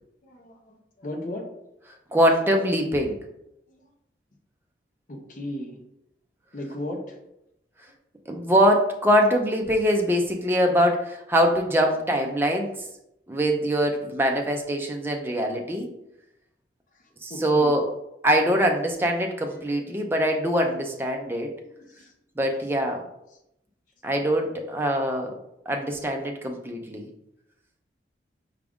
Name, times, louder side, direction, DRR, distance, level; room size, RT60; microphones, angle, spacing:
voice 1, 0.2-1.4 3.7-3.8 5.1-5.8 6.5-7.2 17.3-17.8 21.9-22.1, left 1 dB, 45° left, 1 dB, 0.6 m, -35 dB
voice 2, 2.1-3.2 8.3-12.8 13.3-15.9 17.2-17.9 18.2-21.5 22.4-23.0 24.0-25.4 25.7-27.1, equal, 10° right, 2 dB, 0.4 m, -23 dB
4.9 x 2.4 x 3.5 m, 0.84 s
head